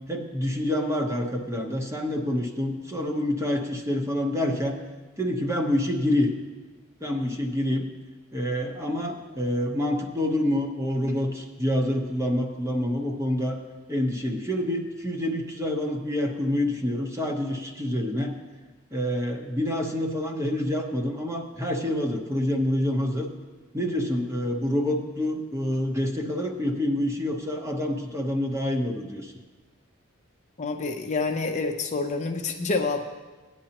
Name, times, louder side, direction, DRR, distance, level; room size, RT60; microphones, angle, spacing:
voice 1, 0.1-4.7 5.2-6.3 7.0-7.9 8.3-13.6 13.9-18.4 18.9-23.3 23.7-29.3, left 1 dB, 15° right, 2 dB, 1.0 m, -27 dB
voice 2, 30.6-33.0, left 3 dB, 35° left, 3 dB, 0.6 m, -27 dB
17.0 x 9.8 x 3.0 m, 1.3 s
head